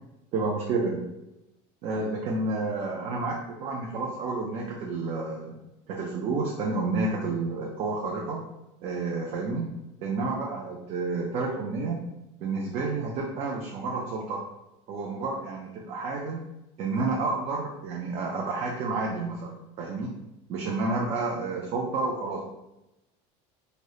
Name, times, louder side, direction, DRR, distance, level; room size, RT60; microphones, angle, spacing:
voice 1, 0.3-1.1 1.8-5.6 5.9-8.4 8.8-9.7 10.0-12.0 12.4-14.4 14.9-16.4 16.8-20.1 20.5-22.4, right 3 dB, 40° right, 0 dB, 0.3 m, -30 dB
2.8 x 2.0 x 2.3 m, 0.95 s
cardioid pair, 150°, 15 cm